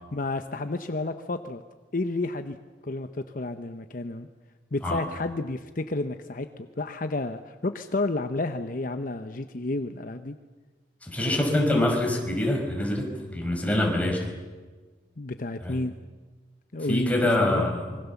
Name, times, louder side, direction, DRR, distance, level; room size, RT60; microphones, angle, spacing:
voice 1, 0.1-1.6 1.9-2.6 2.8-4.3 4.7-10.4 15.2-15.9 16.7-17.7, left 2 dB, 50° left, 8 dB, 0.9 m, -31 dB
voice 2, 11.0-14.3 15.6-15.8 16.9-18.0, left 1 dB, 10° left, 1 dB, 4.8 m, -25 dB
25.5 x 22.5 x 7.1 m, 1.3 s
head